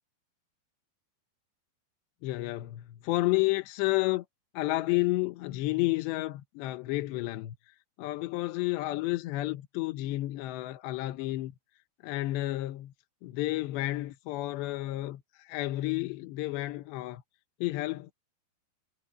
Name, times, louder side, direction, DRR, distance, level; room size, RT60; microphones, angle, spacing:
voice 1, 2.2-4.3 4.5-11.5 12.0-12.9 13.2-17.2 17.6-18.1, left 18 dB, 85° left, 3.2 m, -31 dB
omnidirectional pair, 4.9 m